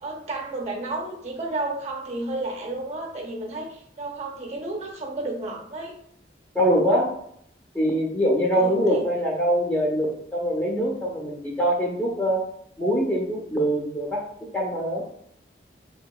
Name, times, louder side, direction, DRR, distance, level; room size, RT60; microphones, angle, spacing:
voice 1, 0.0-5.9 8.5-9.0, right 2 dB, 40° right, -1 dB, 0.7 m, -32 dB
voice 2, 6.5-7.1 7.7-12.5 12.8-14.3 14.5-15.1, equal, 10° left, -3 dB, 0.8 m, -23 dB
3.9 x 2.8 x 2.3 m, 0.69 s
head